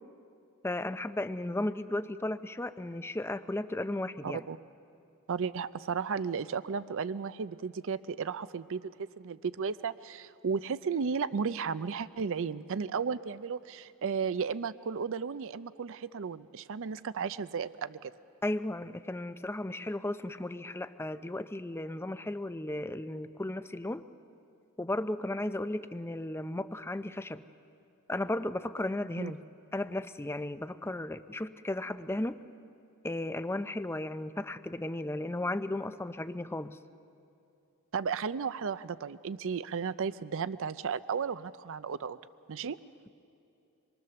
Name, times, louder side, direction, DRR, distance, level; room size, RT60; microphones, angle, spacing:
voice 1, 0.6-4.4 18.4-24.1 24.8-27.4 28.1-29.4 29.7-32.4 33.0-36.8, left 1 dB, 10° left, 11 dB, 0.5 m, -35 dB
voice 2, 4.2-4.6 5.3-18.1 29.2-29.3 37.9-42.2 42.5-42.8, right 6 dB, 60° right, 15 dB, 0.5 m, -34 dB
26.0 x 22.5 x 6.9 m, 2.6 s
head